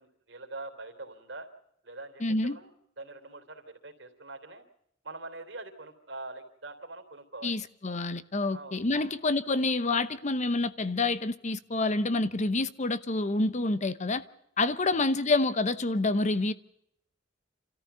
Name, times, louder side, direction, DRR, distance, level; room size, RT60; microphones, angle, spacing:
voice 1, 0.0-1.5 1.8-2.7 3.0-4.6 5.0-7.5 8.5-9.2 14.9-15.0, right 2 dB, 65° right, 3.3 m, -44 dB
voice 2, 2.2-2.6 7.4-14.2 14.6-16.5, left 2 dB, 40° left, 0.9 m, -28 dB
28.5 x 14.0 x 6.9 m
head